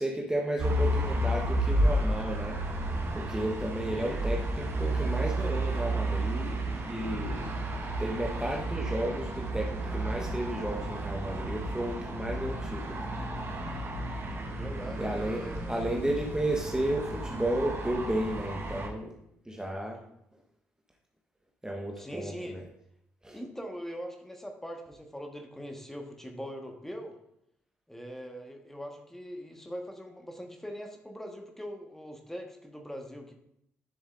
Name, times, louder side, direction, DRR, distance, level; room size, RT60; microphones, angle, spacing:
voice 1, 0.0-2.6 3.1-6.6 6.9-7.6 8.0-13.0 15.0-19.1 19.5-20.0 21.6-22.6 23.2-23.4, right 1 dB, 10° right, -1 dB, 1.2 m, -33 dB
sound 1, 0.6-18.9, right 1 dB, 40° right, 1.4 m, -32 dB
voice 2, 3.9-4.3 14.5-15.8 22.0-22.6 23.3-27.1 27.9-33.3, equal, 5° left, 3 dB, 1.5 m, -42 dB
10.5 x 6.9 x 2.6 m, 0.78 s
figure-of-eight pair, 40°, 6 cm